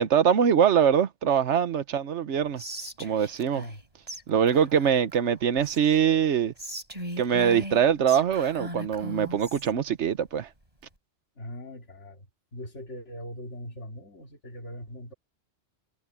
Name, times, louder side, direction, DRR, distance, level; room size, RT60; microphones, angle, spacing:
voice 1, 0.0-2.6 3.0-3.6 4.3-6.5 7.2-10.5, right 8 dB, 75° right, 1.2 m, -23 dB
Whispering, 2.6-3.8 4.1-4.2 4.5-6.0 6.6-9.7, right 1 dB, 30° right, 5.5 m, -39 dB
voice 2, 11.4-12.3 12.5-15.1, equal, 80° left, 2.9 m, -41 dB
omnidirectional pair, 1.2 m